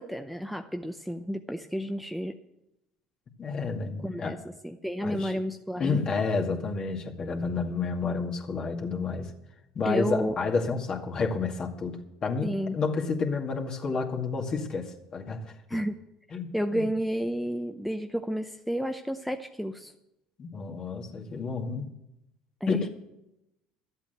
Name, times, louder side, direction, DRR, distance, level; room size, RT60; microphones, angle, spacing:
voice 1, 0.0-2.3 4.0-4.4 4.6-6.0 9.8-10.4 12.4-12.8 15.7-15.9 16.5-19.9 22.6-22.8, equal, ahead, 6 dB, 0.7 m, -31 dB
voice 2, 3.4-4.4 5.0-5.4 5.8-9.3 9.7-15.5 16.3-16.9 20.4-21.9 22.7-22.8, left 4 dB, 40° left, 1 dB, 2.2 m, -30 dB
12.5 x 8.2 x 8.0 m, 0.89 s
supercardioid pair, 85°, 2 cm